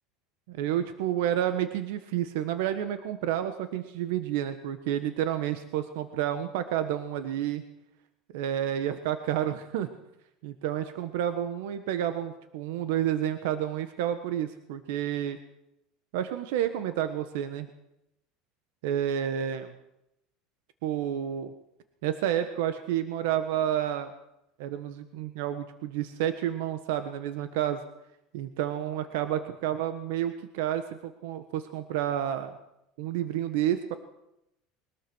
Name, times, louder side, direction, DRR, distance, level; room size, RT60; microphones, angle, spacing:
voice 1, 0.5-7.6 8.3-9.9 10.4-15.4 16.1-17.7 18.8-19.7 20.8-21.5 22.0-24.1 24.6-27.8 28.3-32.5 33.0-33.9, right 10 dB, 80° right, 9 dB, 1.4 m, -30 dB
21.5 x 20.5 x 6.3 m, 0.85 s
cardioid pair, 155°, 0 cm